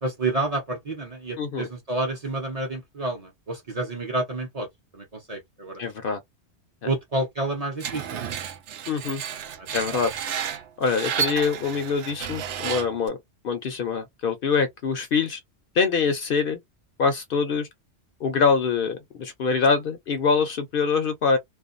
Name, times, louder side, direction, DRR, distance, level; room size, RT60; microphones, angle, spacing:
voice 1, 0.0-4.7 4.9-5.8 6.8-8.3 9.9-10.0, right 2 dB, 40° right, 0.7 m, -29 dB
voice 2, 1.4-1.7 5.8-6.2 8.9-9.2 9.7-10.1 10.8-13.2 13.4-15.4 15.7-16.6 17.0-17.7 18.2-21.4, left 5 dB, 60° left, 0.7 m, -24 dB
Screech, 7.8-13.1, right 8 dB, 90° right, 0.9 m, -32 dB
2.4 x 2.2 x 2.5 m
omnidirectional pair, 1.2 m